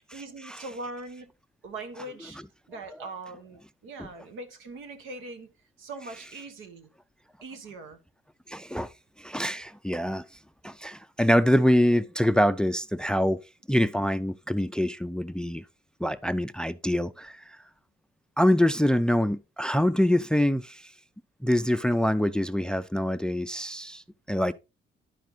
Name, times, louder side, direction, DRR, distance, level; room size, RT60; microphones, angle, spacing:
voice 1, 0.1-1.3 1.6-2.4 2.7-5.5 5.8-6.9 7.4-8.0, right 2 dB, 85° right, 1.2 m, -41 dB
voice 2, 8.5-8.9 9.2-10.2 10.6-13.4 13.7-15.6 16.0-17.6 18.4-20.8 21.4-24.0 24.3-24.5, equal, 5° left, 0.3 m, -25 dB
11.0 x 5.1 x 3.1 m
cardioid pair, 90°, 20 cm